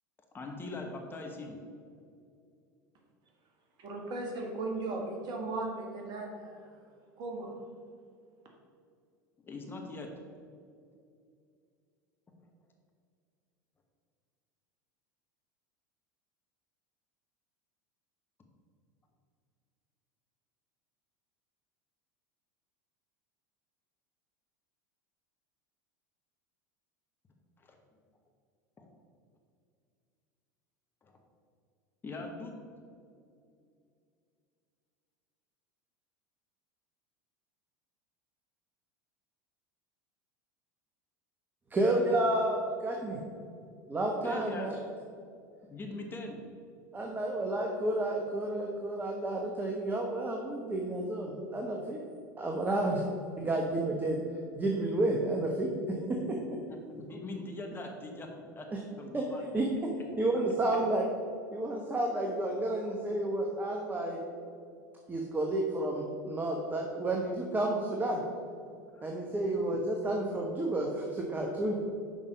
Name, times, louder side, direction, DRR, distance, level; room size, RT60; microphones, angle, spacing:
voice 1, 0.3-1.6 9.4-10.1 27.6-27.8 28.8-28.9 31.0-31.2 32.0-32.6 44.2-44.7 45.7-46.4 56.7-58.7 58.9-59.6 68.9-69.1, left 2 dB, 20° left, 2 dB, 1.1 m, -41 dB
voice 2, 3.8-6.8 7.2-7.5, right 2 dB, 45° right, 1 dB, 1.6 m, -37 dB
voice 3, 41.7-43.2 43.9-44.7 46.9-52.0 52.4-53.0 53.4-54.2 54.5-55.7 59.1-59.2 59.5-59.6 60.2-61.0 61.5-64.2 65.1-68.2 69.0-71.7, right 1 dB, 20° right, 0 dB, 1.0 m, -31 dB
6.3 x 5.3 x 5.2 m, 2.4 s
figure-of-eight pair, 80°, 10 cm